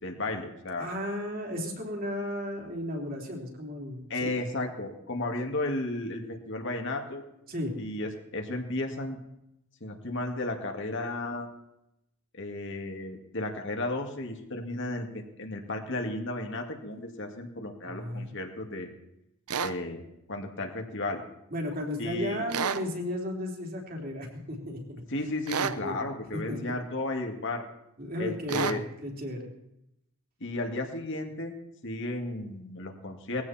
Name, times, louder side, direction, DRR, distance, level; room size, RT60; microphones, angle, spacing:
voice 1, 0.0-0.9 4.1-7.2 7.8-9.2 9.8-11.5 12.3-18.9 19.6-20.0 20.3-21.2 22.0-22.5 25.1-27.6 28.2-28.8 30.4-31.6 31.8-33.4, left 2 dB, 55° left, 3 dB, 2.4 m, -34 dB
voice 2, 0.8-4.3 7.5-7.8 17.9-18.3 21.5-24.8 25.6-26.0 26.5-26.6 28.0-29.5, left 1 dB, 40° right, 0 dB, 3.5 m, -34 dB
sound 1, 19.5-19.8 22.5-22.9 25.5-25.8 28.5-28.8, right 6 dB, 90° right, 0.8 m, -30 dB
20.5 x 16.0 x 4.4 m, 0.83 s
head